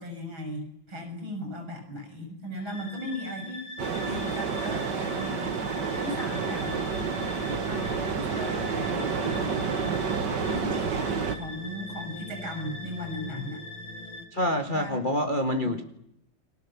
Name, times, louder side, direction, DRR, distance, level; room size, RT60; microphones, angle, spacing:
voice 1, 0.0-3.7 4.0-5.6 5.9-9.5 10.5-11.1 11.3-13.6 14.5-15.0 15.5-15.8, left 1 dB, 80° right, 4 dB, 7.1 m, -37 dB
sound 1, 2.7-14.3, left 1 dB, 70° left, 3.4 m, -41 dB
sound 2, 3.8-11.4, right 5 dB, 60° right, 2.3 m, -29 dB
voice 2, 14.3-15.8, left 1 dB, 25° left, 5 dB, 1.7 m, -27 dB
29.5 x 22.0 x 7.2 m, 0.78 s
omnidirectional pair, 2.2 m